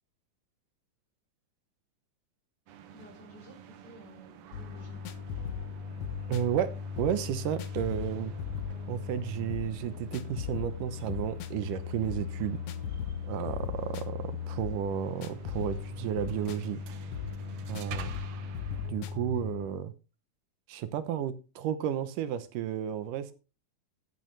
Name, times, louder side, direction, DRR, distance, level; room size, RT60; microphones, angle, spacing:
sound 1, 2.7-18.9, right 9 dB, 65° right, 1.5 m, -50 dB
voice 1, 2.9-5.1, left 2 dB, 30° left, 4.3 m, -53 dB
sound 2, 4.5-19.7, left 7 dB, 65° left, 1.7 m, -37 dB
voice 2, 6.3-6.7 7.0-8.3 8.9-12.6 13.3-16.8 17.7-18.1 18.9-19.9 20.7-23.3, right 10 dB, 85° right, 2.5 m, -32 dB
10.5 x 10.5 x 3.2 m
omnidirectional pair, 3.6 m